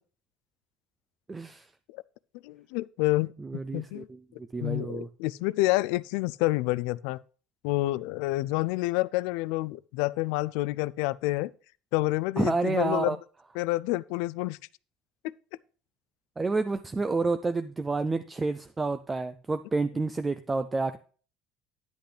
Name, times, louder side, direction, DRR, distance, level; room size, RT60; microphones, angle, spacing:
voice 1, 1.3-1.7 3.4-4.2 4.5-5.1 12.4-13.2 16.4-21.0, right 3 dB, 15° right, 0.3 m, -29 dB
voice 2, 2.4-3.3 3.7-4.1 4.6-7.2 7.6-11.5 11.9-13.2 13.6-14.6, left 19 dB, 90° left, 0.3 m, -28 dB
10.0 x 8.1 x 3.2 m
cardioid pair, 160°, 0 cm